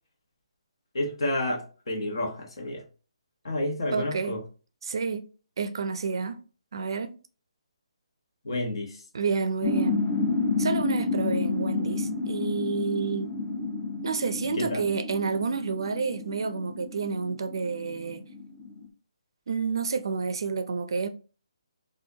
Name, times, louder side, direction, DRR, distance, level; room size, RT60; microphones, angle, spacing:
voice 1, 0.9-2.8 3.4-4.4 8.4-9.0 14.6-14.9, left 1 dB, 55° left, 1.2 m, -30 dB
voice 2, 3.9-4.4 4.8-5.3 5.6-6.4 6.7-7.1 9.1-10.0 10.6-13.3 14.0-18.3 19.5-21.1, right 5 dB, 50° right, 0.4 m, -29 dB
sound 1, 9.6-18.8, left 4 dB, 10° left, 0.5 m, -30 dB
4.2 x 2.5 x 2.8 m
hypercardioid pair, 175°, 3 cm